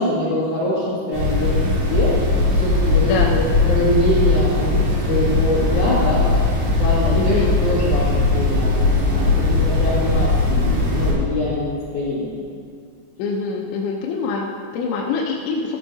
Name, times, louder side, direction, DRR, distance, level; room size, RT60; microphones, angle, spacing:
voice 1, 0.0-2.1 2.5-3.4 3.6-6.4 6.8-12.4, left 1 dB, 50° left, -8 dB, 2.8 m, -24 dB
sound 1, 1.1-11.1, left 2 dB, 85° right, 4.6 m, -19 dB
voice 2, 7.1-7.6 13.2-15.8, left 5 dB, 75° left, -2 dB, 2.9 m, -24 dB
14.5 x 14.0 x 2.8 m, 2.2 s
omnidirectional pair, 5.8 m